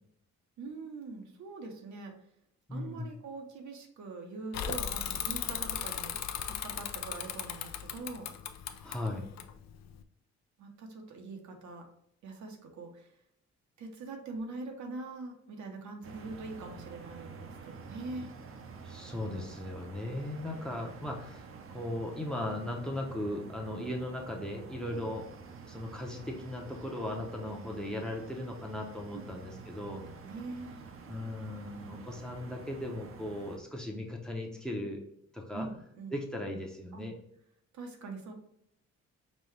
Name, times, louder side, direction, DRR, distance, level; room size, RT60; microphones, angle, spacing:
voice 1, 0.6-2.2 2.7-8.3 10.6-11.9 12.2-13.1 13.8-18.3 23.8-23.9 24.9-25.1 29.1-29.2 29.8-30.8 35.5-36.2 36.9-37.1 37.7-38.3, right 3 dB, 75° right, 3 dB, 0.9 m, -43 dB
voice 2, 2.7-3.1 8.8-9.2 18.8-21.4 21.7-25.2 25.7-30.0 31.1-35.0 35.3-35.7 36.1-37.1, left 1 dB, 5° left, 1 dB, 0.6 m, -37 dB
Bicycle / Mechanisms, 4.5-10.0, left 9 dB, 65° left, 0.5 m, -37 dB
sound 1, 16.0-33.6, right 5 dB, 50° right, 0.6 m, -48 dB
5.3 x 2.2 x 3.2 m, 0.75 s
cardioid pair, 110°, 29 cm